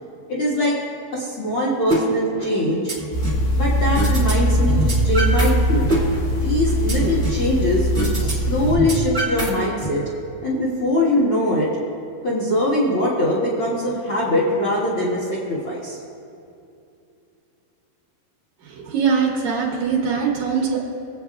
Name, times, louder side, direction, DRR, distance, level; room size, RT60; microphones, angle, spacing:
voice 1, 0.3-0.8 1.1-2.9 3.5-5.9 6.4-7.9 8.2-10.0 10.4-11.7 12.2-16.0, left 1 dB, 55° left, -6 dB, 1.5 m, -22 dB
sound 1, 1.9-2.0 2.4-3.4 3.9-4.3 4.6-5.5 5.8-7.5 7.9-8.3 8.6-9.9, right 1 dB, 5° left, 0.8 m, -24 dB
sound 2, 3.1-8.7, equal, 80° left, 3.5 m, -21 dB
voice 2, 18.6-20.8, right 6 dB, 80° right, -2 dB, 1.7 m, -22 dB
24.5 x 8.2 x 2.4 m, 2.6 s
omnidirectional pair, 4.8 m